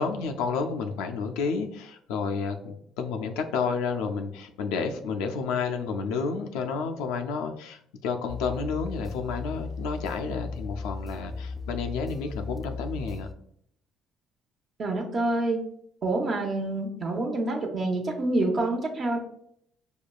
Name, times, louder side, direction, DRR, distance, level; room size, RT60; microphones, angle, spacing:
voice 1, 0.0-13.3, left 5 dB, 80° left, 5 dB, 0.3 m, -30 dB
sound 1, 8.3-13.3, left 3 dB, ahead, 0.5 m, -36 dB
voice 2, 14.8-15.6 16.0-19.2, right 2 dB, 50° right, 1 dB, 0.7 m, -27 dB
4.9 x 2.2 x 2.3 m, 0.68 s
supercardioid pair, 65°, 0 cm